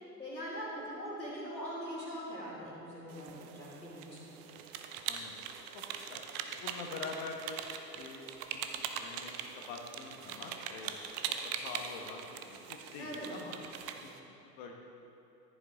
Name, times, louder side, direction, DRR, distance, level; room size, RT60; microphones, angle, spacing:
voice 1, 0.0-4.3 13.0-13.3, equal, 90° left, -5 dB, 2.7 m, -42 dB
sound 1, 3.1-14.2, right 8 dB, 30° right, 0.7 m, -42 dB
voice 2, 5.7-6.2 6.5-7.6 7.9-8.3 8.5-11.0 11.4-13.6 13.9-14.7, left 4 dB, 40° left, 1 dB, 1.2 m, -46 dB
14.5 x 10.5 x 3.8 m, 2.8 s
figure-of-eight pair, 85°, 50 cm